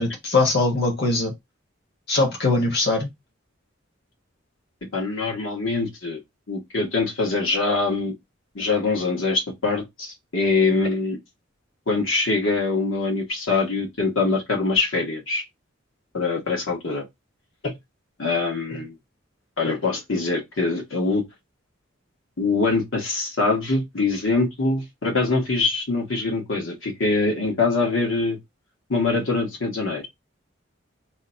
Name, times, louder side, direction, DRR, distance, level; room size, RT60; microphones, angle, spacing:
voice 1, 0.0-1.3 2.1-3.1, left 2 dB, 55° left, 1.1 m, -21 dB
voice 2, 4.9-6.2 6.5-8.1 8.5-11.2 11.9-15.4 16.1-17.0 17.6-17.7 18.2-18.9 19.6-21.2 22.4-28.4 28.9-30.1, left 3 dB, 80° left, 1.3 m, -23 dB
2.8 x 2.3 x 3.8 m
head